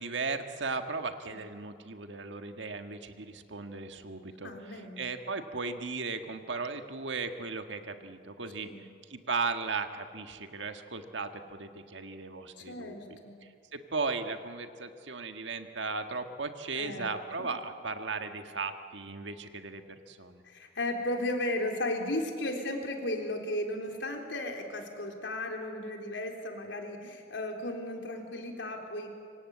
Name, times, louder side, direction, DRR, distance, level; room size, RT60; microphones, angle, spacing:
voice 1, 0.0-20.4, right 4 dB, 85° right, 7 dB, 1.7 m, -37 dB
voice 2, 4.4-5.1 8.6-8.8 12.6-13.4 16.7-17.1 17.4-17.5 20.4-29.1, left 1 dB, 90° left, 2 dB, 3.9 m, -35 dB
26.0 x 24.5 x 8.5 m, 2.5 s
head